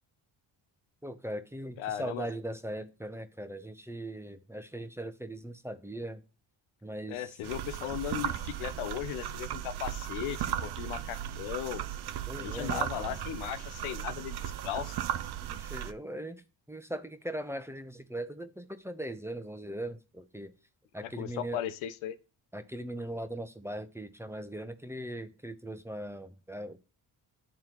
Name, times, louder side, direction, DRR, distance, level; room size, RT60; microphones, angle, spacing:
voice 1, 1.0-6.2 6.8-7.3 12.3-13.2 15.5-20.5 20.9-21.6 22.5-26.8, right 1 dB, 5° right, 0.7 m, -39 dB
voice 2, 1.8-2.3 7.1-11.8 12.4-14.4 14.6-15.0 21.0-22.2, left 11 dB, 80° left, 0.7 m, -37 dB
sound 1, 7.4-15.9, right 11 dB, 55° right, 0.6 m, -36 dB
10.5 x 3.7 x 3.0 m
supercardioid pair, 55°, 48 cm